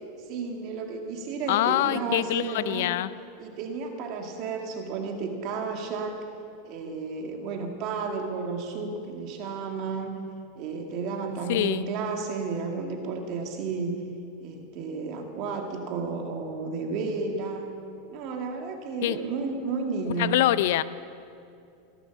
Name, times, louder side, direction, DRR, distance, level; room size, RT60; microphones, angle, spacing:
voice 1, 0.3-2.9 3.4-6.2 6.6-10.2 10.6-14.1 14.4-17.7 18.1-20.4, right 4 dB, 50° right, 3 dB, 2.1 m, -32 dB
voice 2, 1.5-3.1 11.5-11.8 19.0-19.2 20.2-20.8, left 14 dB, 70° left, 16 dB, 0.5 m, -24 dB
17.0 x 11.5 x 7.3 m, 2.5 s
hypercardioid pair, 115°, 0 cm